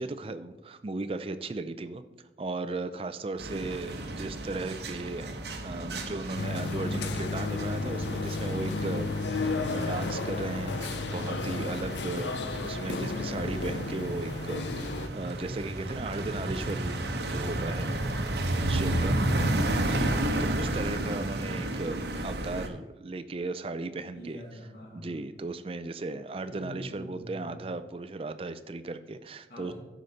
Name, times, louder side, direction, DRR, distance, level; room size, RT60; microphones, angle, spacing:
voice 1, 0.0-2.0 2.4-10.8 11.1-16.9 17.2-17.9 18.7-19.2 19.8-24.4 24.9-29.7, right 3 dB, 30° right, 10 dB, 0.4 m, -36 dB
sound 1, 3.4-22.7, right 1 dB, 70° right, 0.9 m, -32 dB
sound 2, 6.3-15.1, left 3 dB, 85° left, 0.5 m, -33 dB
voice 2, 24.1-25.1 26.5-27.6 29.5-29.7, equal, 60° left, -4 dB, 3.0 m, -45 dB
13.5 x 5.1 x 4.1 m, 1.1 s
head